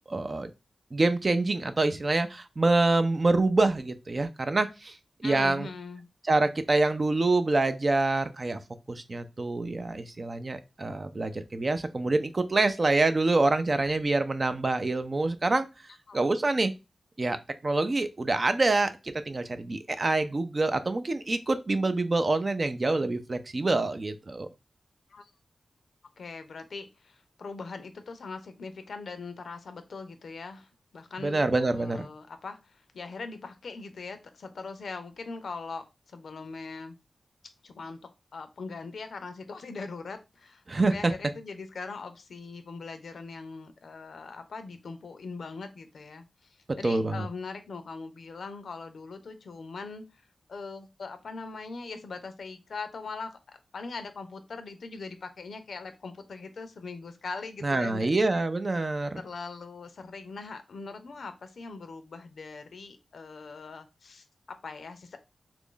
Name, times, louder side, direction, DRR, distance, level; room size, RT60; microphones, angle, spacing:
voice 1, 0.1-0.5 0.9-4.9 5.2-5.7 6.2-8.6 8.9-15.7 16.1-16.7 17.2-17.4 17.6-18.9 19.3-24.5 31.2-32.1 40.7-41.1 46.8-47.3 57.6-59.2, right 2 dB, 45° right, 0.5 m, -26 dB
voice 2, 5.2-6.1 16.1-16.2 25.1-25.3 26.2-37.0 37.6-38.0 38.3-40.6 40.9-50.0 50.5-58.1 59.2-65.2, left 4 dB, 80° left, 0.5 m, -41 dB
3.0 x 2.5 x 3.8 m
cardioid pair, 60°, 0 cm